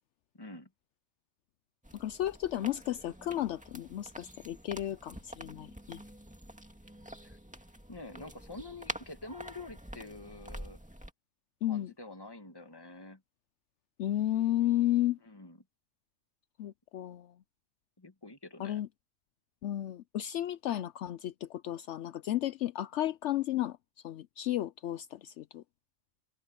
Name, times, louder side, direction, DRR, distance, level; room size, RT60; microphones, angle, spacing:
voice 1, 0.3-0.7 7.2-7.4 7.9-10.8 11.7-13.2 15.2-15.6 18.0-18.8, left 2 dB, 20° left, 1.6 m, -47 dB
sound 1, 1.8-11.1, equal, 5° right, 2.1 m, -47 dB
voice 2, 1.9-6.0 11.6-11.9 14.0-15.2 16.6-17.3 18.6-18.9 19.6-23.8 24.0-25.6, left 13 dB, 70° left, 0.8 m, -33 dB
omnidirectional pair, 1.3 m